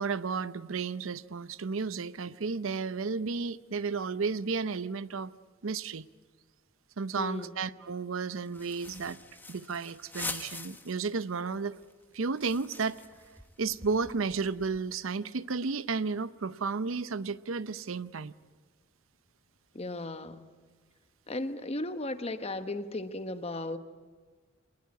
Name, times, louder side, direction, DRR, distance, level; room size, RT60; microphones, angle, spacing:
voice 1, 0.0-5.3 5.6-6.1 7.0-9.2 9.5-11.7 12.1-13.0 13.6-18.3, right 4 dB, 80° right, 15 dB, 0.7 m, -33 dB
voice 2, 7.2-7.6 19.7-20.4 21.3-23.8, left 2 dB, 30° left, 10 dB, 1.1 m, -36 dB
Plastic bag, 8.4-11.1 11.5-11.6 11.8-15.0, left 3 dB, 10° left, 1.2 m, -44 dB
25.5 x 19.5 x 9.6 m, 1.4 s
head